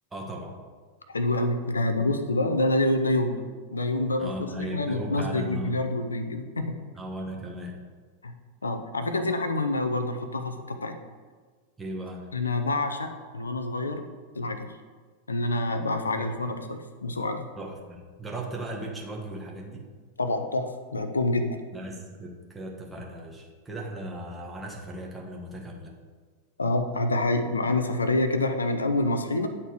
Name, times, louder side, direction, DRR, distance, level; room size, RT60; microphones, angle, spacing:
voice 1, 0.1-0.6 4.2-5.7 6.9-7.8 11.8-12.3 16.1-16.3 17.5-19.9 21.7-25.9, right 1 dB, 15° right, -1 dB, 1.3 m, -37 dB
voice 2, 1.1-3.4 3.7-6.8 8.2-8.4 8.6-11.0 12.3-14.0 14.3-14.8 15.3-17.5 20.2-21.6 26.6-29.5, left 2 dB, 75° left, 7 dB, 0.5 m, -27 dB
9.1 x 4.2 x 4.8 m, 1.5 s
figure-of-eight pair, 90°, 0 cm